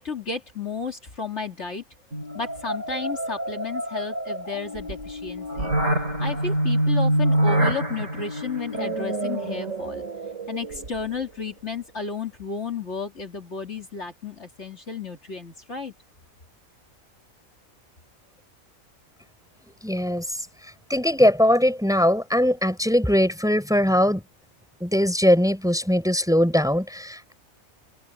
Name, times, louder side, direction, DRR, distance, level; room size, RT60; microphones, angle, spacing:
voice 1, 0.0-1.8 2.3-5.7 6.2-10.0 10.5-15.9, left 4 dB, 55° left, 2.9 m, -33 dB
sound 1, 2.1-11.2, right 1 dB, 65° right, 4.6 m, -26 dB
voice 2, 19.8-20.3 20.9-24.2 24.8-27.3, equal, ahead, 4.0 m, -20 dB
omnidirectional pair, 1.4 m